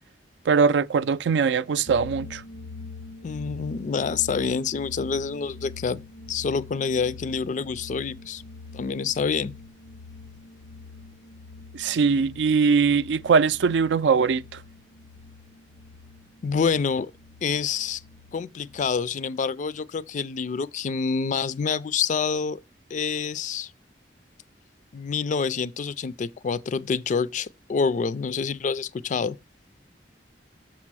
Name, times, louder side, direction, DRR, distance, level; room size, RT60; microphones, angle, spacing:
voice 1, 0.5-2.4 11.7-14.4, right 5 dB, 80° right, 0.4 m, -21 dB
sound 1, 1.9-18.9, left 3 dB, 80° left, 0.7 m, -44 dB
voice 2, 3.2-6.0 6.3-8.4 8.7-9.6 16.4-17.1 17.4-18.0 18.3-22.6 22.9-23.7 24.9-29.4, left 5 dB, 45° left, 0.3 m, -27 dB
6.6 x 4.2 x 6.1 m
head